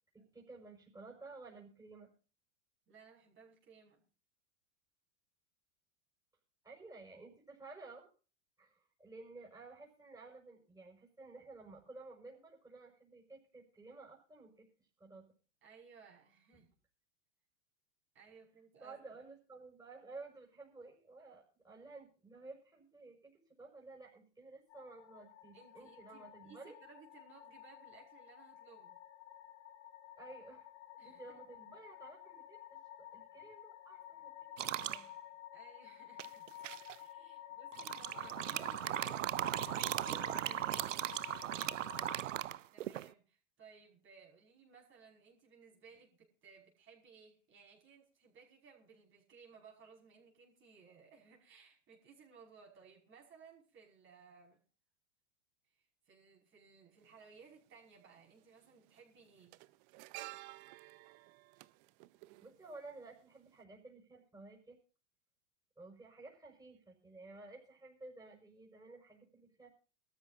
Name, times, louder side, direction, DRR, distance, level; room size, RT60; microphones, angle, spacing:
voice 1, 0.1-2.1 6.6-8.1 8.6-15.3 18.8-26.7 30.2-30.7 31.0-32.6 33.0-34.3 34.6-35.1 37.4-37.6 38.0-38.3 39.9-41.0 62.4-64.8 65.8-69.7, right 3 dB, 10° right, -1 dB, 5.6 m, -54 dB
voice 2, 2.9-4.0 15.6-16.7 18.1-19.0 25.5-29.0 31.0-31.3 35.5-36.5 37.0-39.3 42.7-54.6 55.7-59.6, right 5 dB, 30° right, 0 dB, 5.6 m, -60 dB
sound 1, 24.7-42.2, left 12 dB, 65° left, 2.8 m, -52 dB
sound 2, 34.6-35.0 36.2-36.9 37.7-43.1, right 12 dB, 85° right, 0.7 m, -38 dB
sound 3, 57.0-57.1 58.3-58.6 58.9-63.2 63.4-63.6, right 21 dB, 50° right, 0.8 m, -53 dB
22.5 x 13.5 x 2.6 m, 0.36 s
hypercardioid pair, 110°, 37 cm